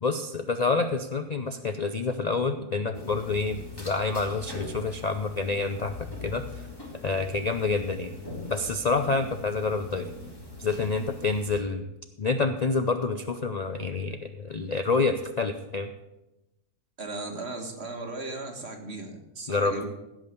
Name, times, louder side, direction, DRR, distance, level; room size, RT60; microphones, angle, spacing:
voice 1, 0.0-6.6 7.0-8.1 8.5-10.1 10.6-11.9 12.2-15.9 19.5-19.8, left 3 dB, 75° left, 8 dB, 0.3 m, -28 dB
sound 1, 2.9-11.6, left 2 dB, 15° left, 2.5 m, -41 dB
voice 2, 17.0-19.9, right 2 dB, 45° right, 3 dB, 1.9 m, -36 dB
16.0 x 6.2 x 6.8 m, 0.96 s
omnidirectional pair, 1.6 m